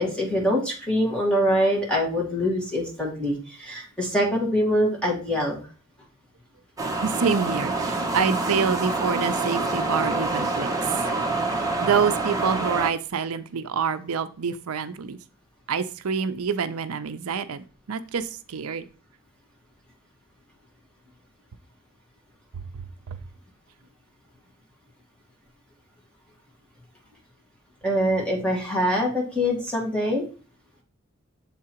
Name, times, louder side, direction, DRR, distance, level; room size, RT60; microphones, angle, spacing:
voice 1, 0.0-5.6 27.8-30.2, equal, 5° left, -2 dB, 2.0 m, -24 dB
sound 1, 6.8-12.9, right 2 dB, 15° right, 1.1 m, -26 dB
voice 2, 7.0-11.0 11.8-15.2 15.7-18.9 22.5-22.6 23.1-23.2, right 6 dB, 85° right, 11 dB, 0.5 m, -27 dB
7.4 x 3.7 x 4.3 m, 0.37 s
head